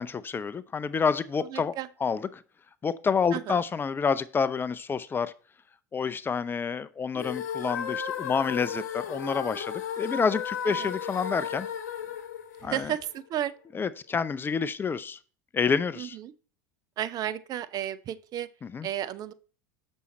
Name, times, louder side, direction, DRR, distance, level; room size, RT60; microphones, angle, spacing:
voice 1, 0.0-1.7 2.0-2.4 2.8-5.3 5.9-11.7 12.6-12.9 13.7-15.2 15.5-16.2 18.6-18.9, left 5 dB, 25° left, 0.5 m, -28 dB
voice 2, 1.5-1.9 3.3-3.6 10.8-10.9 12.6-13.5 16.0-16.3 17.0-18.5 18.8-19.3, right 11 dB, 45° right, 0.6 m, -33 dB
sound 1, 7.1-13.3, left 8 dB, 80° left, 1.0 m, -35 dB
7.0 x 6.3 x 4.1 m
hypercardioid pair, 85°, 9 cm